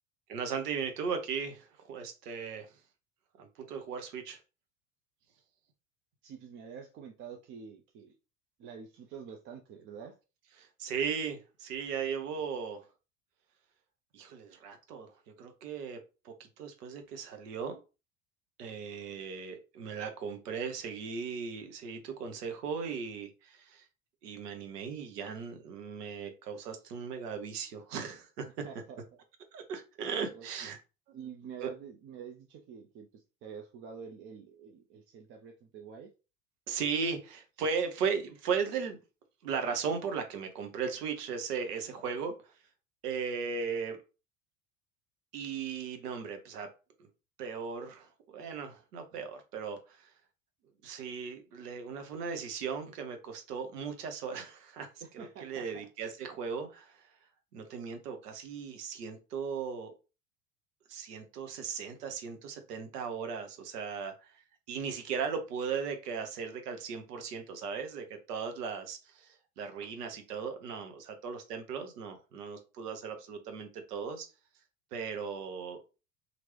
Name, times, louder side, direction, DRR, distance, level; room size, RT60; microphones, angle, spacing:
voice 1, 0.3-2.7 3.4-4.4 10.6-12.8 14.1-15.1 15.4-16.0 16.2-17.8 18.6-23.8 24.2-28.6 29.5-30.8 31.6-31.7 36.7-39.0 39.4-42.5 43.0-44.0 45.3-46.7 47.4-50.1 50.8-54.9 55.1-57.1 57.5-59.9 60.9-64.3 64.7-74.3 74.9-75.8, right 6 dB, 75° right, 6 dB, 0.8 m, -37 dB
voice 2, 6.2-8.2 8.6-10.2 28.4-29.0 30.3-30.5 31.1-36.1 55.0-55.9 70.0-70.1, right 7 dB, 30° right, 3 dB, 0.4 m, -47 dB
2.9 x 2.6 x 3.0 m, 0.31 s
figure-of-eight pair, 75°, 48 cm